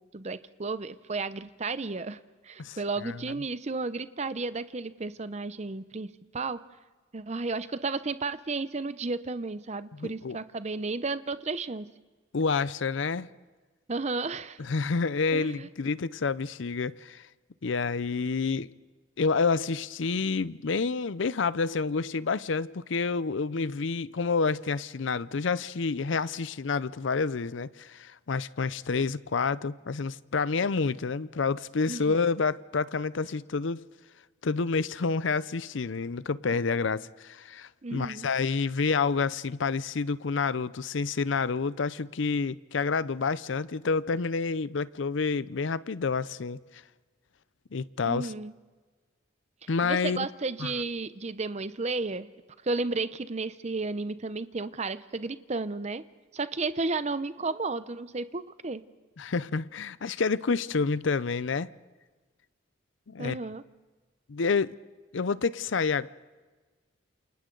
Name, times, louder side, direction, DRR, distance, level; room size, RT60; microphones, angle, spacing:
voice 1, 0.0-2.2 2.4-6.6 7.1-11.9 13.9-14.6 15.3-15.7 31.9-32.1 37.8-38.3 48.1-48.5 49.8-52.3 52.6-56.0 56.3-58.8 63.2-63.6, right 3 dB, 35° right, 0.6 m, -33 dB
voice 2, 2.6-3.2 9.9-10.4 12.3-13.3 14.6-17.2 17.6-18.7 19.2-33.8 34.4-46.6 47.7-48.3 49.7-50.3 50.6-50.7 59.2-61.7 63.1-63.4 64.3-64.8 65.1-66.1, left 4 dB, 70° left, 0.6 m, -29 dB
28.5 x 28.5 x 3.9 m
head